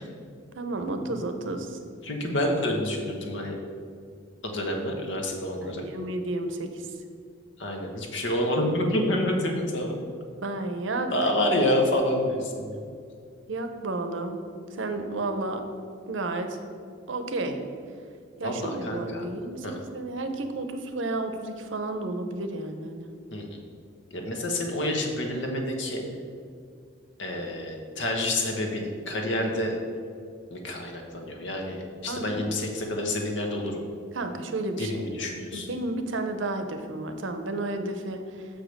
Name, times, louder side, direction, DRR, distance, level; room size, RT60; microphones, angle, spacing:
voice 1, 0.5-1.8 5.6-6.9 10.4-11.1 13.5-14.4 14.7-15.6 16.1-16.6 17.1-17.6 18.4-19.7 19.9-23.1 32.1-32.4 34.1-35.0 35.5-38.5, right 2 dB, 70° right, 7 dB, 0.8 m, -32 dB
voice 2, 2.0-3.5 4.4-5.9 7.6-10.0 11.1-12.8 18.4-19.2 19.6-19.8 23.3-23.4 24.1-26.0 27.2-29.8 30.5-33.8 34.8-35.7, left 1 dB, 65° left, 2 dB, 1.2 m, -28 dB
6.6 x 5.1 x 6.5 m, 2.3 s
head